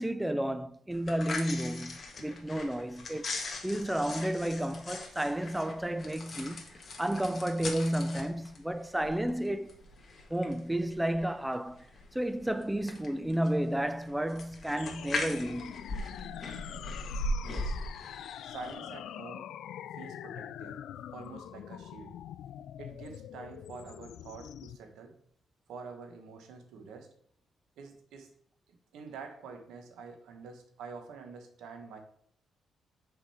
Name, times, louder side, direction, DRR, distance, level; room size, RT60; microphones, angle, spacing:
voice 1, 0.0-3.3 3.6-9.7 10.3-11.9 12.1-15.8, right 1 dB, 5° right, 0.4 m, -32 dB
sound 1, 0.9-18.7, left 2 dB, 35° left, 1.5 m, -40 dB
sound 2, 14.8-24.8, left 11 dB, 75° left, 0.3 m, -44 dB
voice 2, 17.4-17.8 18.4-19.5 20.0-20.8 21.1-22.1 22.8-25.1 25.7-27.1 27.8-28.3 28.7-32.0, right 5 dB, 85° right, 1.3 m, -47 dB
6.2 x 5.2 x 4.3 m
cardioid pair, 90°, 0 cm